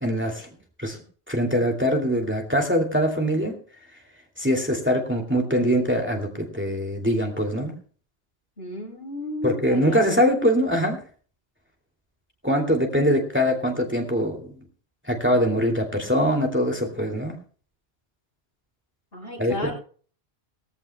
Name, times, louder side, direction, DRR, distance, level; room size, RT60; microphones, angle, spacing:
voice 1, 0.0-1.0 1.3-3.5 4.4-7.7 9.4-11.0 12.4-14.5 15.1-17.3 19.4-19.7, equal, 10° right, 2 dB, 2.6 m, -23 dB
voice 2, 8.6-10.2 19.1-19.7, left 2 dB, 65° left, -1 dB, 7.3 m, -33 dB
21.0 x 14.5 x 2.2 m, 0.43 s
omnidirectional pair, 1.1 m